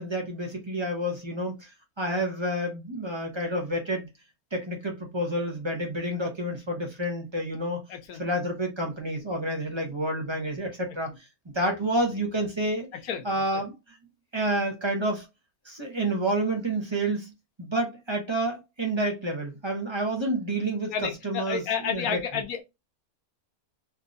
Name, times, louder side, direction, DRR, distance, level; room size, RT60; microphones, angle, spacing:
voice 1, 0.0-4.1 4.5-7.8 8.2-11.3 11.5-12.9 13.2-14.0 14.3-15.3 15.6-17.3 17.6-22.2, right 1 dB, 25° right, 0.8 m, -29 dB
voice 2, 7.9-8.2 13.0-13.2 13.5-13.6 20.9-22.6, left 7 dB, 85° left, 1.2 m, -31 dB
3.6 x 2.8 x 2.5 m
omnidirectional pair, 1.5 m